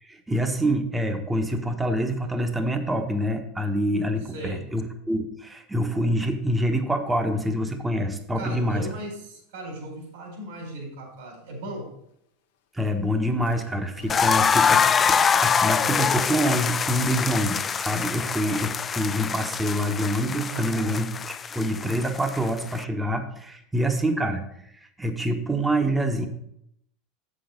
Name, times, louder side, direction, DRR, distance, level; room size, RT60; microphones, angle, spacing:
voice 1, 0.0-8.9 12.7-14.9 15.3-21.1 21.5-24.4 25.0-26.3, equal, 10° right, 6 dB, 1.2 m, -26 dB
voice 2, 4.3-4.6 8.3-11.9 20.5-21.0, right 1 dB, 80° right, 0 dB, 3.7 m, -37 dB
sound 1, 13.4-15.3, left 7 dB, 80° left, 1.0 m, -44 dB
sound 2, 14.1-22.8, left 6 dB, 30° left, 0.3 m, -24 dB
7.6 x 6.3 x 5.2 m, 0.74 s
hypercardioid pair, 95°, 0 cm